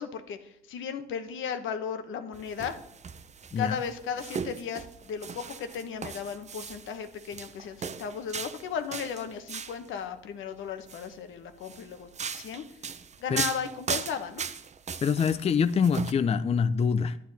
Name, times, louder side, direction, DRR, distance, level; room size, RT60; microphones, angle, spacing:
voice 1, 0.0-2.8 3.6-12.6 13.2-14.5, left 7 dB, 80° left, 8 dB, 1.1 m, -35 dB
sound 1, 2.3-9.9 10.7-11.1 11.6-16.1, right 6 dB, 35° right, 0.6 m, -38 dB
voice 2, 15.0-17.2, left 6 dB, 30° left, 12 dB, 0.5 m, -25 dB
10.0 x 10.0 x 4.1 m, 0.75 s
cardioid pair, 90°, 20 cm